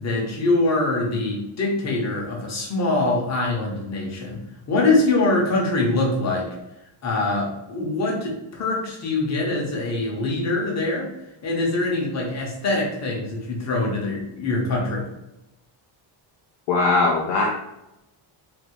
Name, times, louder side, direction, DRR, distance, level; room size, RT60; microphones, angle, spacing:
voice 1, 0.0-4.4 4.7-6.6 7.0-11.1 11.4-15.0, left 2 dB, 35° left, -2 dB, 0.9 m, -23 dB
voice 2, 16.7-17.5, left 3 dB, 60° left, -1 dB, 0.5 m, -20 dB
3.4 x 2.6 x 3.0 m, 0.89 s
cardioid pair, 175°, 49 cm